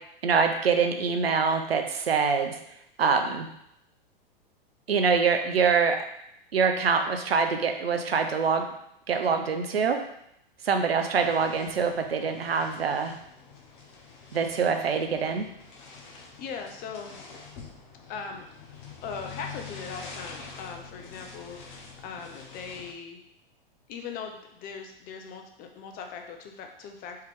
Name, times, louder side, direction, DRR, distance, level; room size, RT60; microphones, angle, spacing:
voice 1, 0.2-2.6 3.0-3.5 4.9-6.0 6.5-8.7 9.1-10.0 10.6-13.1 14.3-15.5, right 5 dB, 90° right, 5 dB, 0.7 m, -24 dB
sound 1, 11.2-22.9, left 5 dB, 55° left, 1.0 m, -46 dB
voice 2, 16.4-17.1 18.1-18.5 19.0-23.2 23.9-27.2, left 5 dB, 30° left, 4 dB, 0.7 m, -39 dB
4.7 x 3.0 x 3.6 m, 0.75 s
hypercardioid pair, 110°, 29 cm